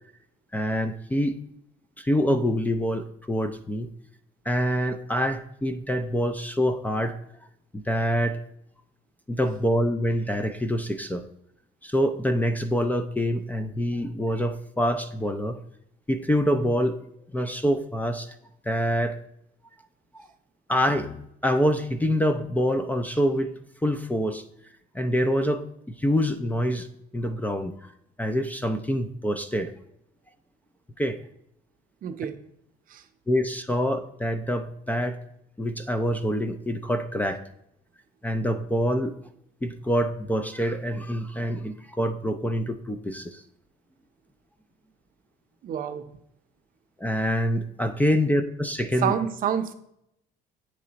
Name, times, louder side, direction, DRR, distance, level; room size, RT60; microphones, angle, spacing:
voice 1, 0.5-1.4 2.0-3.9 4.5-7.2 7.7-8.4 9.3-11.2 11.8-15.6 16.1-17.0 17.3-18.4 18.6-19.2 20.1-20.3 20.7-23.5 23.8-24.4 24.9-26.9 27.1-27.9 28.2-29.7 31.0-31.2 33.3-35.2 35.6-37.4 38.2-39.1 39.6-43.4 47.0-49.1, equal, 10° left, 8 dB, 0.4 m, -26 dB
voice 2, 32.0-32.4 32.9-33.0 45.6-46.0 49.0-49.7, right 9 dB, 55° right, 8 dB, 0.6 m, -27 dB
8.6 x 3.2 x 4.0 m, 0.76 s
cardioid pair, 110°, 17 cm